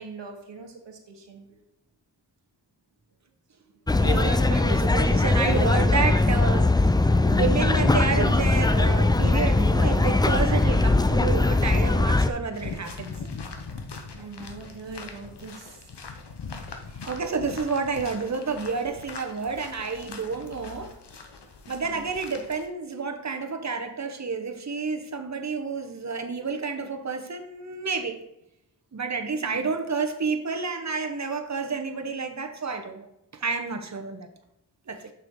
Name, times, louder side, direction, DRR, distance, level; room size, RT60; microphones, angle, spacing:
voice 1, 0.0-1.6 3.6-3.7 14.1-15.9 21.7-22.1 29.3-29.7, right 4 dB, 85° right, 3 dB, 1.2 m, -43 dB
sound 1, 3.9-12.3, left 2 dB, 10° left, 0.3 m, -21 dB
voice 2, 3.9-6.9 7.2-13.1 17.1-21.0 21.7-28.2 28.9-33.1 33.3-34.3 34.9-35.1, right 4 dB, 40° right, 6 dB, 0.9 m, -30 dB
sound 2, 12.5-22.7, left 4 dB, 70° left, 0.9 m, -41 dB
6.5 x 5.8 x 3.6 m, 0.85 s
wide cardioid pair, 55°, 42 cm